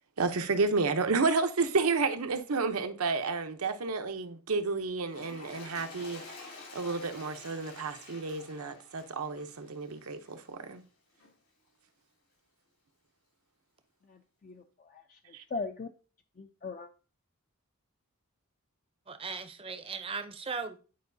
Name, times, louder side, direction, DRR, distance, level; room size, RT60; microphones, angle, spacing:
voice 1, 0.2-6.2 6.7-10.8 15.3-15.4, right 4 dB, 85° right, 0.8 m, -31 dB
Toilet flush, 5.0-10.5 11.2-11.3, left 3 dB, 80° left, 2.7 m, -49 dB
voice 2, 14.1-15.2 15.5-15.9 16.4-16.9, left 4 dB, 35° left, 0.4 m, -39 dB
voice 3, 19.1-20.8, right 4 dB, 25° right, 0.5 m, -38 dB
10.5 x 4.6 x 2.6 m
head